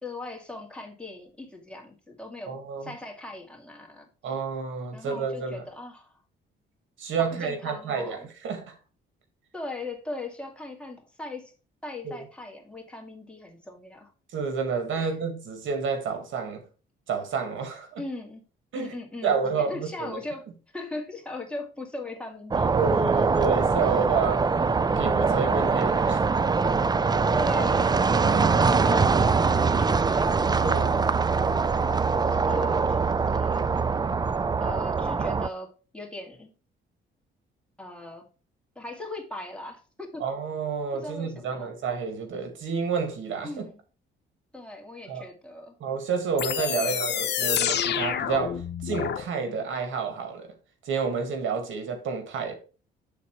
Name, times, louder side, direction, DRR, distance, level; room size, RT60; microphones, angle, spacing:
voice 1, 0.0-2.5 2.8-4.1 4.9-6.2 7.2-8.3 9.5-11.5 11.8-14.1 15.0-15.2 18.0-18.4 18.7-22.9 27.3-30.3 32.2-33.7 34.6-36.5 37.8-38.2 38.8-40.2 40.9-41.7 43.4-43.8 44.5-45.8 46.7-47.2, left 2 dB, 5° left, 2.1 m, -39 dB
voice 2, 2.5-2.9 4.2-5.6 7.0-8.7 12.0-12.2 14.3-16.6 17.1-18.0 18.7-18.9 19.2-20.2 22.8-24.5 25.0-26.2 28.2-28.5 30.6-31.0 40.2-43.6 45.1-45.2 45.8-50.5 50.9-52.5, right 5 dB, 75° right, 1.8 m, -29 dB
sound 1, 22.5-35.5, right 4 dB, 20° right, 0.4 m, -23 dB
sound 2, 46.4-49.2, left 9 dB, 60° left, 0.9 m, -28 dB
8.6 x 4.1 x 4.5 m
cardioid pair, 90°, 20 cm